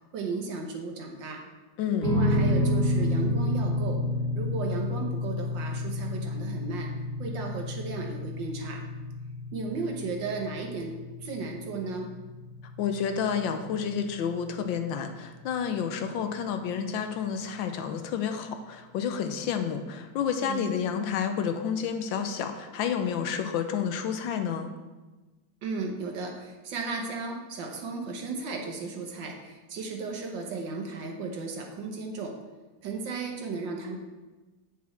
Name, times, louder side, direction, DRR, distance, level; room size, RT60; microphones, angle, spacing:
voice 1, 0.1-1.4 2.0-4.0 4.3-6.9 7.2-8.8 9.5-11.0 11.2-12.1 20.4-20.7 25.6-32.3 32.8-34.0, right 4 dB, 65° right, 2 dB, 1.7 m, -35 dB
voice 2, 1.8-2.1 12.8-24.7, left 7 dB, 75° left, 7 dB, 1.3 m, -30 dB
sound 1, 2.0-14.5, left 1 dB, 30° left, 1.9 m, -30 dB
8.6 x 5.8 x 4.2 m, 1.2 s
omnidirectional pair, 2.2 m